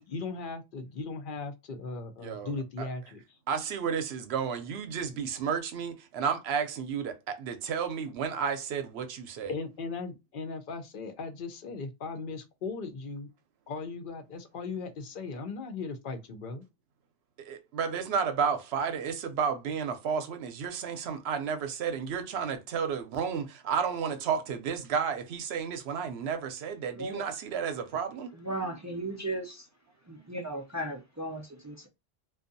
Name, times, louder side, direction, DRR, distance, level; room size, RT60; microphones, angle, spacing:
voice 1, 0.0-3.4 9.5-13.3 13.7-16.6, left 4 dB, 60° left, 0.7 m, -38 dB
voice 2, 2.2-2.5 2.8-2.9 3.5-9.5 17.5-28.3, right 6 dB, 85° right, 0.8 m, -32 dB
voice 3, 27.0-27.3 28.3-29.7 30.1-31.9, right 1 dB, 30° right, 0.3 m, -36 dB
2.6 x 2.2 x 2.6 m
omnidirectional pair, 1.0 m